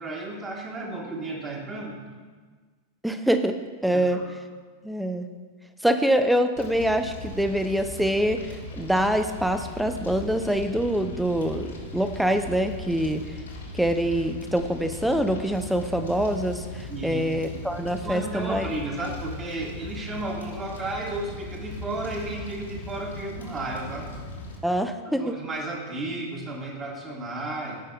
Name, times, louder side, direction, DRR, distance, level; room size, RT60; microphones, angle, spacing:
voice 1, 0.0-2.0 3.9-4.2 16.9-17.2 18.0-24.1 25.2-27.8, right 2 dB, 25° right, -1 dB, 1.6 m, -33 dB
voice 2, 3.0-4.2 4.8-5.3 5.8-13.4 13.7-18.7 24.6-25.4, right 1 dB, ahead, 8 dB, 0.5 m, -25 dB
Fire, 6.6-24.6, left 2 dB, 75° left, 1.6 m, -38 dB
16.0 x 5.5 x 2.3 m, 1.5 s
figure-of-eight pair, 90°, 0 cm